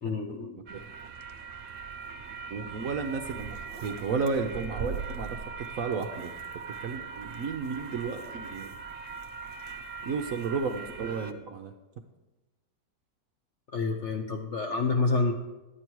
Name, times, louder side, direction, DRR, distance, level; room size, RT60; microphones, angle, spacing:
voice 1, 0.0-0.6 13.7-15.3, left 3 dB, 60° left, 3 dB, 0.8 m, -28 dB
voice 2, 0.7-1.1 2.5-5.4 5.7-6.3 6.8-8.8 10.0-11.7, right 5 dB, 60° right, 5 dB, 0.9 m, -33 dB
sound 1, 0.7-11.3, right 5 dB, 85° right, 0.4 m, -40 dB
11.0 x 8.7 x 4.6 m, 1.1 s
omnidirectional pair, 1.9 m